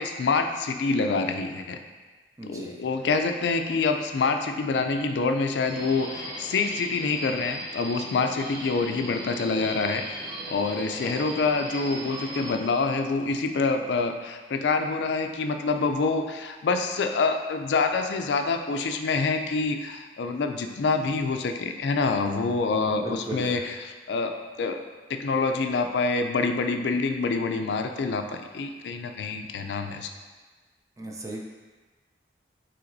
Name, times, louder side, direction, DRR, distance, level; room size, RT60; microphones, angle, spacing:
voice 1, 0.0-1.8 2.4-10.2 10.5-23.7 24.1-24.8 25.1-30.1, left 4 dB, 80° left, 6 dB, 0.4 m, -26 dB
voice 2, 2.4-2.8 22.9-23.6 31.0-31.4, right 2 dB, 20° right, -2 dB, 0.4 m, -36 dB
Subway metro underground, 5.6-12.5, right 1 dB, 60° right, 1.2 m, -38 dB
5.8 x 3.1 x 2.6 m, 1.3 s
head